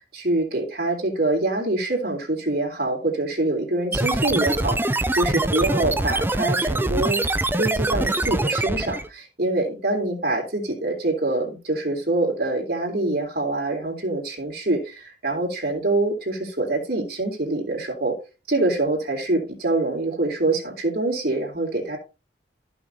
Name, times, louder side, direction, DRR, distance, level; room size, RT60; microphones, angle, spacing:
voice 1, 0.1-18.1 18.5-22.0, right 2 dB, 55° right, 1 dB, 3.5 m, -25 dB
sound 1, 3.9-9.1, right 2 dB, 10° right, 0.4 m, -23 dB
15.0 x 6.1 x 2.8 m, 0.30 s
head